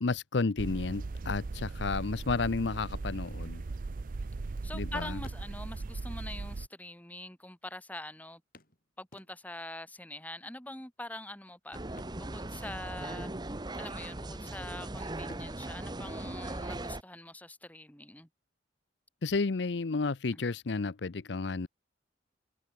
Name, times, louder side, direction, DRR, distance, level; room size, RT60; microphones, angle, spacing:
voice 1, 0.0-3.6 4.7-5.2 19.2-21.7, left 4 dB, 65° left, 0.7 m, -32 dB
sound 1, 0.6-6.7, right 3 dB, 45° right, 0.5 m, -38 dB
sound 2, 3.8-4.8 5.1-6.0 6.9-7.0 7.2-7.3 8.5-9.7 11.8-13.1 13.4-13.6 14.1-14.7 15.2-17.0 18.9-19.0 19.5-19.6, left 2 dB, 50° left, 7.5 m, -58 dB
voice 2, 4.6-8.4 9.0-13.3 13.8-18.3, left 1 dB, 10° left, 4.2 m, -44 dB
sound 3, 11.7-17.0, right 1 dB, 20° right, 1.1 m, -39 dB
head